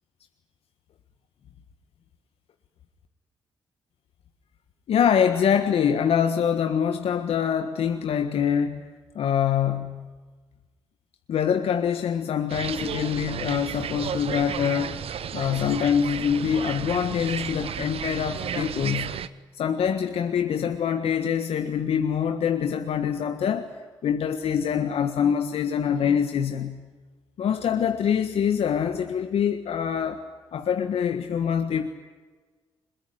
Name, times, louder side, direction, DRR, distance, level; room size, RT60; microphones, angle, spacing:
voice 1, 4.9-8.9 9.1-10.1 11.3-15.0 15.3-19.2 19.5-23.7 24.0-26.8 27.4-30.2 30.5-31.9, left 8 dB, 75° left, 7 dB, 1.5 m, -24 dB
sound 1, 12.5-19.3, right 8 dB, 70° right, 1.1 m, -33 dB
22.0 x 22.0 x 9.9 m, 1.3 s
supercardioid pair, 55°, 10 cm